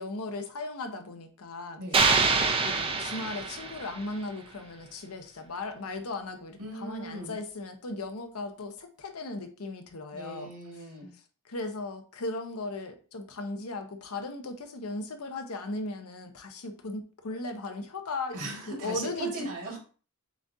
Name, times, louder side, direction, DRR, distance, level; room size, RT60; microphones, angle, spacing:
voice 1, 0.0-1.8 2.6-10.5 11.4-19.5, left 2 dB, 75° left, 0.7 m, -37 dB
sound 1, 1.9-4.1, right 4 dB, 25° right, 0.5 m, -25 dB
voice 2, 6.6-7.4 10.1-11.1 18.3-19.8, right 2 dB, 85° right, 1.9 m, -38 dB
7.1 x 2.5 x 2.7 m
head